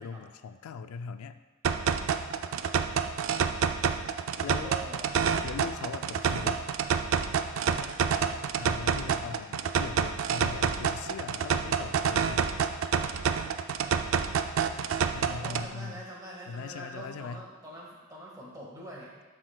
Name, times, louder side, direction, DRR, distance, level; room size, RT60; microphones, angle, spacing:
voice 1, 0.0-1.4 4.4-4.8 5.4-6.6 8.6-12.5 15.1-16.0 16.5-17.4, left 6 dB, 85° left, 10 dB, 0.3 m, -40 dB
sound 1, 1.6-15.7, right 6 dB, 70° right, 0.4 m, -28 dB
voice 2, 2.4-2.9 4.4-5.1 7.5-8.4 15.3-19.1, right 1 dB, 15° right, -4 dB, 1.5 m, -45 dB
12.0 x 6.0 x 2.2 m, 1.3 s
head